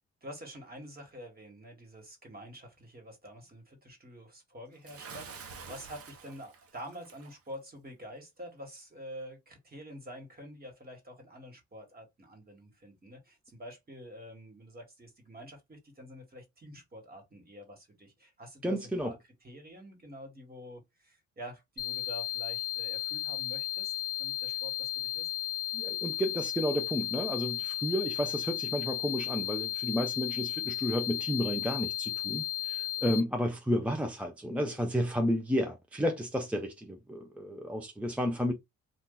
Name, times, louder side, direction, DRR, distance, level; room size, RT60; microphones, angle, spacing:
voice 1, 0.2-19.2 19.4-23.9 24.2-25.3, equal, 30° right, 1.6 m, -47 dB
Bathtub (filling or washing) / Splash splatter, 4.8-7.4, right 5 dB, 50° right, 0.8 m, -48 dB
voice 2, 18.6-19.1 25.7-38.5, equal, 5° right, 0.5 m, -32 dB
sound 1, 21.8-33.2, left 14 dB, 35° left, 0.8 m, -34 dB
2.7 x 2.4 x 3.8 m
cardioid pair, 90°, 30 cm